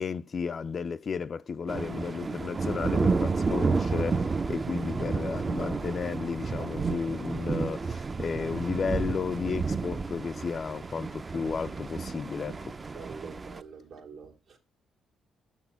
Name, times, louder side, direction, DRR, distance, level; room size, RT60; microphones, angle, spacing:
voice 1, 0.0-12.7, left 5 dB, 45° left, 0.3 m, -33 dB
sound 1, 1.7-13.6, right 4 dB, 30° right, 0.4 m, -31 dB
voice 2, 12.9-14.6, right 5 dB, 75° right, 1.3 m, -45 dB
6.3 x 6.0 x 5.5 m
cardioid pair, 90°, 0 cm